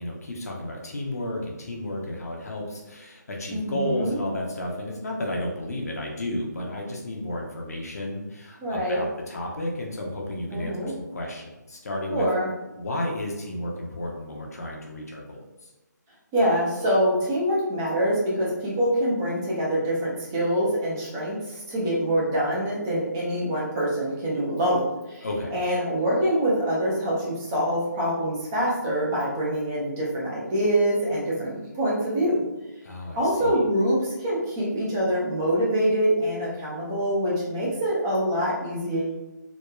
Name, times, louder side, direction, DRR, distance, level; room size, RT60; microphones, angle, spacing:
voice 1, 0.0-12.3 12.8-15.7 25.2-25.6 32.8-33.6, left 1 dB, 55° left, -1 dB, 0.5 m, -32 dB
voice 2, 3.5-4.2 8.6-9.0 10.5-10.9 12.1-12.5 16.3-25.3 25.5-32.4 33.2-39.2, equal, 10° right, -6 dB, 0.4 m, -25 dB
2.9 x 2.1 x 2.2 m, 1.0 s
figure-of-eight pair, 165°, 10 cm